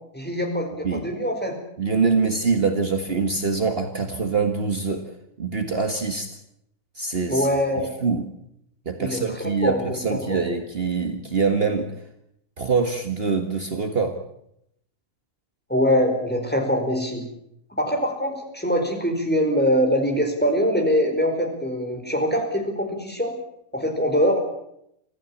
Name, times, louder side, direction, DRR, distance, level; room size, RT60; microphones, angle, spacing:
voice 1, 0.1-1.6 7.3-7.9 9.0-10.4 15.7-17.2 17.8-23.3 23.7-24.4, equal, 5° left, 2 dB, 4.9 m, -23 dB
voice 2, 1.8-5.0 5.4-6.3 7.0-7.5 8.0-8.3 8.9-11.9 12.6-14.2, right 4 dB, 45° right, 5 dB, 1.9 m, -24 dB
26.0 x 15.0 x 8.6 m, 0.76 s
omnidirectional pair, 1.4 m